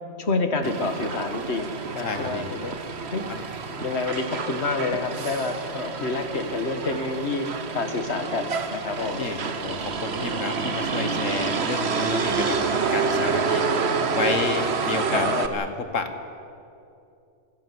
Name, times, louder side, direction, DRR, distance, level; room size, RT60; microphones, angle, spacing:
voice 1, 0.2-2.7 3.1-3.2 3.8-7.5 7.7-9.3 15.1-15.5, left 3 dB, 60° left, 7 dB, 1.9 m, -28 dB
Motor vehicle (road), 0.6-15.5, right 5 dB, 60° right, 1.4 m, -28 dB
voice 2, 2.0-2.5 3.3-3.5 9.2-12.6 12.9-16.1, left 4 dB, 80° left, 8 dB, 1.9 m, -30 dB
26.5 x 15.5 x 7.9 m, 2.6 s
omnidirectional pair, 1.3 m